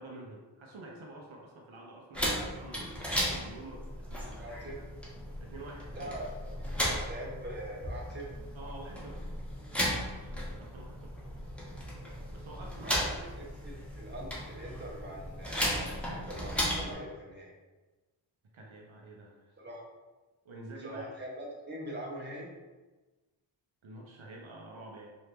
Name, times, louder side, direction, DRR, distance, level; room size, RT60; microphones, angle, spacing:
voice 1, 0.0-3.8 4.1-4.7 5.4-6.1 8.6-9.2 10.1-11.1 12.3-13.2 18.5-19.6 20.4-21.1 23.8-25.1, right 2 dB, 75° right, -2 dB, 0.8 m, -48 dB
sound 1, 2.1-16.9, equal, ahead, 1.1 m, -36 dB
voice 2, 4.4-4.8 5.9-8.3 8.6-8.7 12.8-17.5 19.6-19.8 20.8-22.5, right 1 dB, 20° right, -4 dB, 1.1 m, -43 dB
4.3 x 2.7 x 3.4 m, 1.2 s
wide cardioid pair, 65°, 48 cm